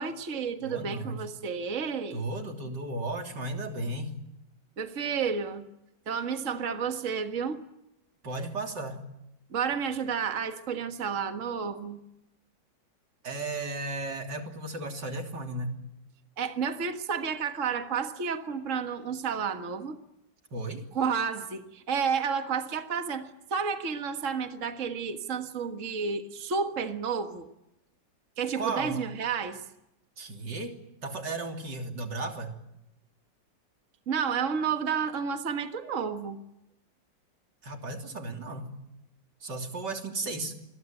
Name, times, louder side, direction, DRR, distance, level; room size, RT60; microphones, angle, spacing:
voice 1, 0.0-2.2 4.8-5.6 6.1-7.6 9.5-12.0 16.4-20.0 20.9-27.5 28.4-29.6 34.1-36.4, right 6 dB, 45° right, 7 dB, 1.9 m, -31 dB
voice 2, 0.6-1.2 2.1-4.1 8.2-9.0 13.2-15.7 20.5-20.8 28.6-29.0 30.2-30.8 31.0-32.5 37.6-38.7 39.4-40.5, right 2 dB, 65° right, 4 dB, 3.8 m, -34 dB
27.5 x 22.0 x 9.1 m, 0.85 s
omnidirectional pair, 2.0 m